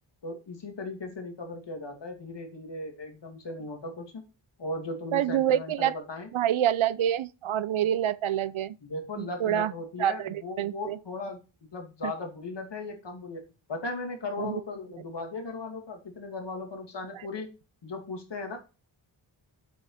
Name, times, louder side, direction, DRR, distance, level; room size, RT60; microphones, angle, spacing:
voice 1, 0.2-4.2 4.6-6.3 8.8-11.4 11.7-17.6 17.8-18.6, left 2 dB, 60° left, 2.7 m, -37 dB
voice 2, 5.1-5.9 6.3-8.8 9.2-9.7 10.0-11.0 12.0-12.1 14.4-14.6, right 10 dB, 80° right, 0.7 m, -27 dB
7.9 x 7.0 x 4.9 m
wide cardioid pair, 130°, 48 cm